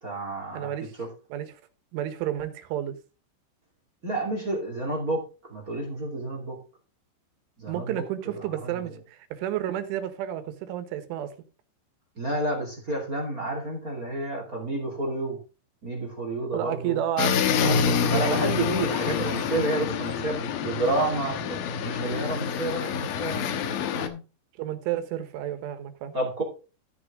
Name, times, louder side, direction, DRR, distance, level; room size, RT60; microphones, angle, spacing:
voice 1, 0.0-0.7 1.0-1.1 4.0-5.2 5.5-6.6 7.6-8.8 12.2-15.4 15.8-17.0 18.0-24.2 26.1-26.4, right 2 dB, 25° right, 2.0 m, -30 dB
voice 2, 0.5-0.9 1.3-1.6 1.9-3.0 7.7-11.3 16.5-18.4 24.6-26.2, right 11 dB, 85° right, 3.7 m, -31 dB
sound 1, 17.2-24.1, left 7 dB, 75° left, 2.2 m, -27 dB
14.0 x 6.3 x 3.7 m
omnidirectional pair, 5.5 m